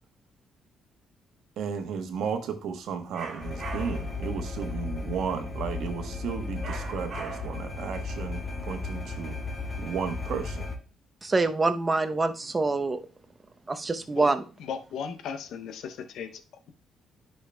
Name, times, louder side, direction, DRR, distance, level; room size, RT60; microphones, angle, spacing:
voice 1, 1.6-9.3 9.7-10.6, right 6 dB, 75° right, 6 dB, 1.1 m, -34 dB
sound 1, 3.1-4.2 6.6-7.7, right 5 dB, 60° right, 1.8 m, -40 dB
sound 2, 3.4-10.7, left 3 dB, 40° left, 1.5 m, -35 dB
voice 2, 11.2-13.0 13.7-14.4, right 3 dB, 25° right, 8 dB, 0.7 m, -25 dB
voice 3, 14.6-16.4, left 7 dB, 80° left, 9 dB, 0.6 m, -36 dB
10.0 x 5.5 x 2.2 m, 0.36 s
cardioid pair, 90°, 0 cm